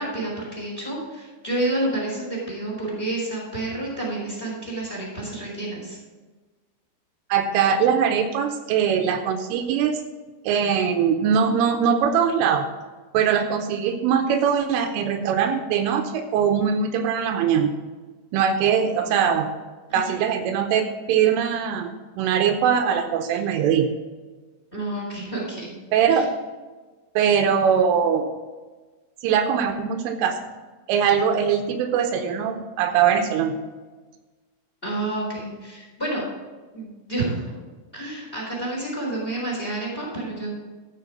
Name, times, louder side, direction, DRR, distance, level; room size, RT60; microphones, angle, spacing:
voice 1, 0.0-6.0 19.9-20.2 24.7-25.7 26.1-26.2 34.8-36.3 36.7-37.4 37.9-40.5, right 2 dB, 10° left, -2 dB, 3.5 m, -29 dB
voice 2, 7.3-10.0 10.4-12.7 13.1-17.7 18.3-19.5 19.9-23.9 25.9-26.3 27.2-28.3 29.2-30.4 30.9-33.6, right 7 dB, 85° right, 5 dB, 3.1 m, -21 dB
13.5 x 7.0 x 5.2 m, 1.3 s
omnidirectional pair, 5.9 m